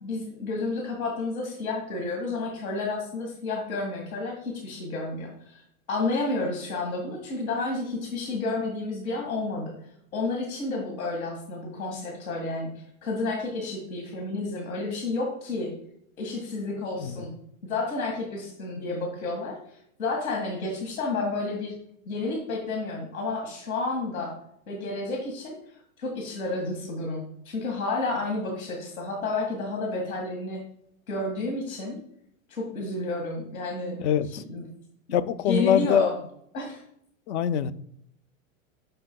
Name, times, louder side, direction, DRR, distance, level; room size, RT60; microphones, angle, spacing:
voice 1, 0.0-5.6 5.9-9.7 10.1-12.7 13.0-15.7 16.2-17.3 17.6-19.6 20.0-21.7 22.1-24.3 24.7-25.6 26.0-30.6 31.1-32.0 32.5-34.0 34.5-34.6 35.5-36.1 36.5-36.8, left 3 dB, 80° left, 1.9 m, -30 dB
voice 2, 34.0-34.4 35.1-36.1 37.3-37.7, left 9 dB, 55° left, 0.5 m, -24 dB
7.7 x 6.6 x 2.2 m
hypercardioid pair, 135°, 41 cm